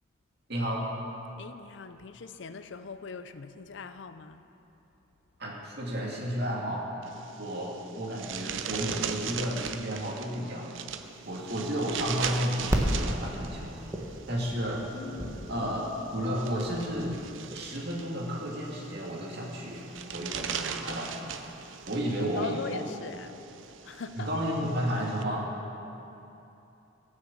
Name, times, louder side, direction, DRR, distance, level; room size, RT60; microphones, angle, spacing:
voice 1, 0.5-0.9 5.4-6.9 7.4-10.7 11.3-13.8 14.3-14.8 15.5-17.2 17.5-21.4 21.9-22.9 24.1-25.5, equal, 60° right, -2 dB, 2.2 m, -32 dB
voice 2, 1.4-4.4 14.9-15.6 22.4-23.4 23.8-24.3, left 5 dB, 70° left, 10 dB, 0.5 m, -41 dB
sound 1, 7.0-25.2, right 7 dB, 85° right, 0.6 m, -40 dB
sound 2, 11.2-22.3, equal, 15° right, 1.1 m, -36 dB
15.5 x 6.5 x 7.3 m, 2.9 s
head